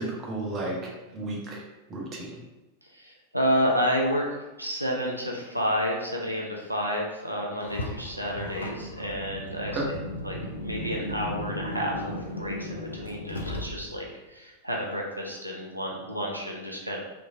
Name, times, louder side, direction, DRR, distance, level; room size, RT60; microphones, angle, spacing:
voice 1, 0.0-1.6 1.9-2.4 9.7-9.8, right 2 dB, 25° right, -2 dB, 0.7 m, -33 dB
voice 2, 2.8-9.8 10.2-10.4 10.6-17.0, equal, 90° right, -1 dB, 0.4 m, -30 dB
Car, 7.6-14.1, left 1 dB, 75° left, 0.4 m, -36 dB
3.0 x 2.5 x 2.5 m, 1.1 s
figure-of-eight pair, 90°, 0 cm